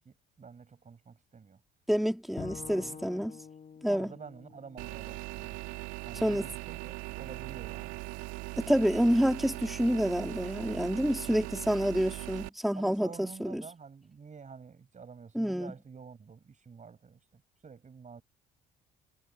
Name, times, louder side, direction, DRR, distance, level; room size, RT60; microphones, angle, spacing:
voice 1, 0.0-1.6 2.4-3.0 3.9-5.6 6.1-8.0 12.7-18.2, right 5 dB, 35° right, 6.4 m, -49 dB
voice 2, 1.9-3.3 3.8-4.1 6.2-6.5 8.6-13.6 15.3-15.7, equal, ahead, 2.7 m, -28 dB
Bowed string instrument, 2.4-5.6, left 7 dB, 40° left, 2.2 m, -47 dB
sound 1, 4.8-12.5, right 21 dB, 80° right, 2.1 m, -40 dB
hypercardioid pair, 65°, 21 cm